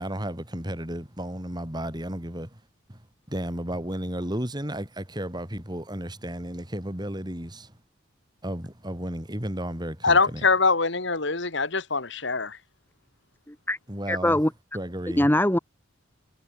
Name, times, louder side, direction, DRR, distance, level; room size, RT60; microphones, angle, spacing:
voice 1, 0.0-2.6 2.9-3.0 3.3-7.7 8.4-10.4 13.9-14.4 14.7-15.3, right 1 dB, 20° right, 4.7 m, -33 dB
voice 2, 10.0-12.6, left 4 dB, 65° left, 2.4 m, -23 dB
voice 3, 13.5-13.8 14.1-14.5 15.2-15.6, left 1 dB, 10° left, 1.8 m, -22 dB
head